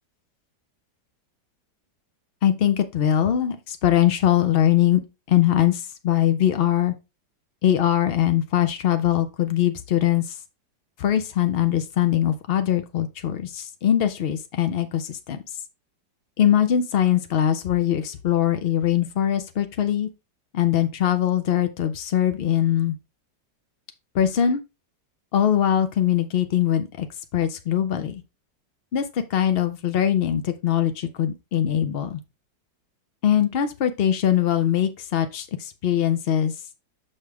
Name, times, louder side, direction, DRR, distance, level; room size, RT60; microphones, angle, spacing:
voice 1, 2.4-5.0 5.3-6.9 7.6-10.4 11.0-15.4 16.4-20.1 20.5-23.0 24.1-24.6 25.3-27.1 27.3-28.2 28.9-32.2 33.2-36.5, left 10 dB, 70° left, 0.5 m, -22 dB
6.6 x 5.4 x 3.4 m
omnidirectional pair, 1.9 m